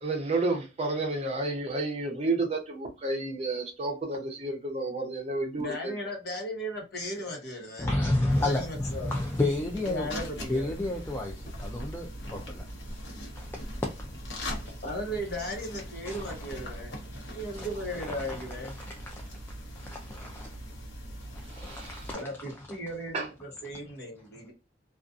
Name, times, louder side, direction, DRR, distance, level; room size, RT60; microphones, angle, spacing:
voice 1, 0.0-5.9 21.5-22.1 23.1-23.3, right 2 dB, 35° right, 0.6 m, -31 dB
voice 2, 5.6-7.9 8.4-9.2 9.8-10.8 14.8-17.0 17.3-18.8 22.1-24.5, equal, 55° left, 0.9 m, -36 dB
voice 3, 7.8-8.6 9.1-10.1 10.5-11.3 11.6-12.6 19.9-20.5 21.6-22.0, left 1 dB, 10° left, 0.3 m, -29 dB
sound 1, 8.3-22.1, equal, 80° left, 0.9 m, -41 dB
2.5 x 2.3 x 2.4 m
head